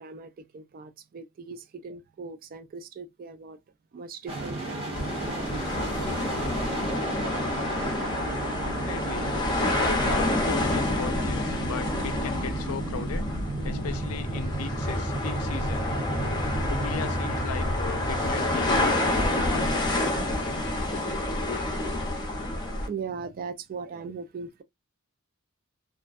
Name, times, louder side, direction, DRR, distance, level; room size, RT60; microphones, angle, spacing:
voice 1, 0.0-3.6 3.9-6.1 6.7-6.8 22.9-24.6, right 5 dB, 45° right, 0.3 m, -39 dB
sound 1, 4.3-19.9, right 2 dB, 30° right, 1.0 m, -34 dB
sound 2, 4.9-22.9, left 1 dB, 20° left, 0.7 m, -28 dB
sound 3, 8.1-18.2, left 1 dB, 75° right, 0.8 m, -39 dB
voice 2, 8.6-9.4 9.8-13.2 13.6-15.9 16.7-20.0, left 6 dB, 80° left, 0.4 m, -37 dB
2.4 x 2.2 x 2.4 m
head